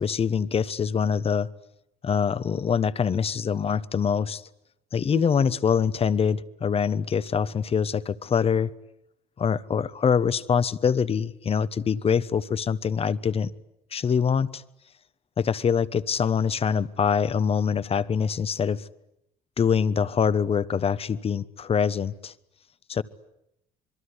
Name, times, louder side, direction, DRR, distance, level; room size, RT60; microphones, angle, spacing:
voice 1, 0.0-1.5 2.0-4.4 4.9-8.7 9.4-13.5 13.9-14.6 15.4-18.9 19.6-22.3 22.9-23.0, left 6 dB, 35° left, 1.1 m, -24 dB
sound 1, 5.1-8.5, right 3 dB, 80° right, 3.1 m, -43 dB
26.0 x 22.5 x 9.9 m
cardioid pair, 110°, 17 cm